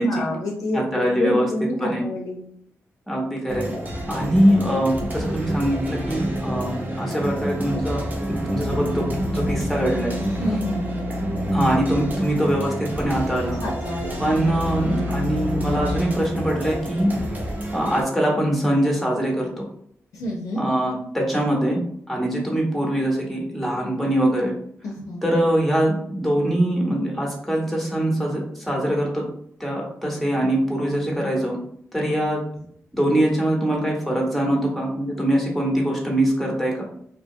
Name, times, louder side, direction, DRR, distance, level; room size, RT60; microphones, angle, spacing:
voice 1, 0.0-2.4 10.4-10.9 13.6-14.2 20.1-20.6 24.8-25.2, left 1 dB, 80° left, -2 dB, 0.5 m, -27 dB
voice 2, 0.7-1.5 1.8-2.0 3.1-3.7 4.1-8.0 8.3-9.0 9.3-10.1 10.5-10.6 11.5-13.6 14.2-17.1 17.7-19.7 20.5-21.8 22.1-24.5 25.2-29.2 29.6-31.6 31.9-32.4 32.9-36.8, right 1 dB, ahead, -2 dB, 0.8 m, -23 dB
sound 1, 3.5-18.0, right 1 dB, 30° right, 0.7 m, -29 dB
sound 2, 8.7-12.2 12.5-12.6 13.2-16.0, left 1 dB, 80° right, 1.1 m, -29 dB
2.7 x 2.2 x 2.7 m, 0.66 s
cardioid pair, 85°, 6 cm